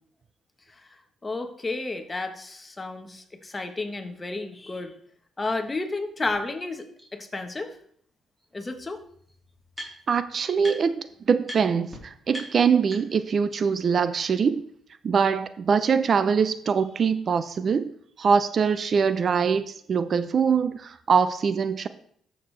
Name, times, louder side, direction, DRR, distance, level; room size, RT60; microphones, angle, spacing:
voice 1, 1.2-4.9 5.4-6.8 7.1-7.7 8.5-9.0, left 3 dB, 25° left, 1.2 m, -31 dB
sound 1, 6.3-6.4 7.0-7.1 8.4-8.5 8.7-10.2 10.6-11.0 11.4-11.6 11.9-12.0 12.3-13.3, equal, 10° right, 3.6 m, -41 dB
voice 2, 10.1-14.6 15.0-17.9 18.2-21.9, right 6 dB, 50° right, 0.5 m, -23 dB
13.0 x 6.5 x 3.3 m
cardioid pair, 90°, 0 cm